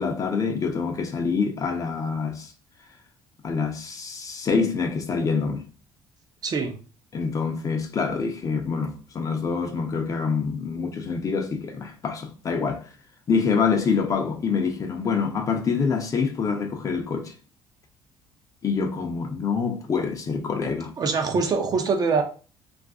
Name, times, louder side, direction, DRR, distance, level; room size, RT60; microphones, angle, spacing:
voice 1, 0.0-2.5 3.4-5.6 7.1-12.8 13.3-17.3 18.6-20.9, left 5 dB, 35° left, 0.5 m, -26 dB
voice 2, 6.4-6.7 21.0-22.2, right 4 dB, 40° right, 0.6 m, -23 dB
2.5 x 2.4 x 3.5 m
cardioid pair, 110°, 10 cm